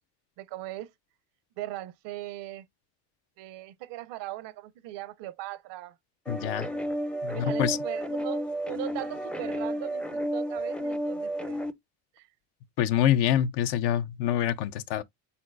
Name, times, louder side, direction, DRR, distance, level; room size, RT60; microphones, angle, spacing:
voice 1, 0.4-0.9 1.6-2.7 3.4-6.0 7.3-11.6 12.2-12.3, right 15 dB, 75° right, 0.7 m, -39 dB
voice 2, 6.3-6.7 7.2-7.8 12.8-15.0, left 11 dB, 70° left, 0.6 m, -26 dB
sound 1, 6.3-11.7, equal, 5° left, 0.4 m, -32 dB
4.3 x 3.8 x 2.4 m
supercardioid pair, 90°, 42 cm